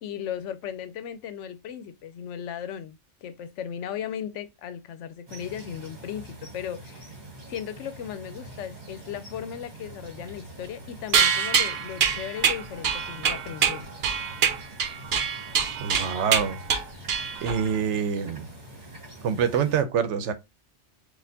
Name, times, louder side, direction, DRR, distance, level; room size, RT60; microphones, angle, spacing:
voice 1, 0.0-7.1 7.5-14.0, left 9 dB, 85° left, 0.9 m, -36 dB
sound 1, 5.3-19.8, right 1 dB, 40° right, 1.3 m, -45 dB
sound 2, 11.1-17.7, right 7 dB, 65° right, 0.8 m, -25 dB
voice 2, 15.8-16.6 17.4-18.5 19.2-20.3, right 7 dB, 85° right, 0.9 m, -25 dB
4.1 x 2.5 x 2.6 m
omnidirectional pair, 1.2 m